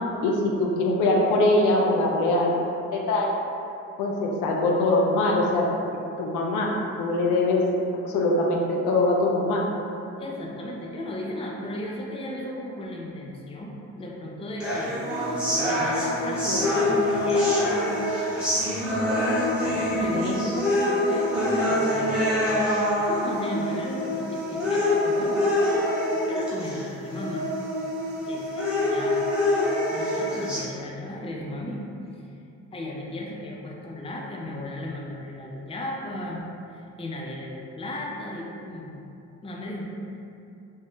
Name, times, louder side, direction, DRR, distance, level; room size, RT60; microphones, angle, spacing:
voice 1, 0.2-3.3 4.0-7.6 8.0-9.7 20.1-20.4, left 2 dB, 85° left, -1 dB, 0.5 m, -23 dB
voice 2, 10.2-15.0 15.5-17.6 19.9-20.4 21.1-21.4 21.7-25.4 26.3-27.5 28.2-29.3 29.9-31.8 32.1-32.3 32.7-39.0 39.4-39.9, left 1 dB, 20° left, -2 dB, 0.5 m, -35 dB
sound 1, 14.6-30.6, left 1 dB, 5° right, 0.9 m, -25 dB
2.6 x 2.3 x 3.4 m, 2.6 s
cardioid pair, 90°, 30 cm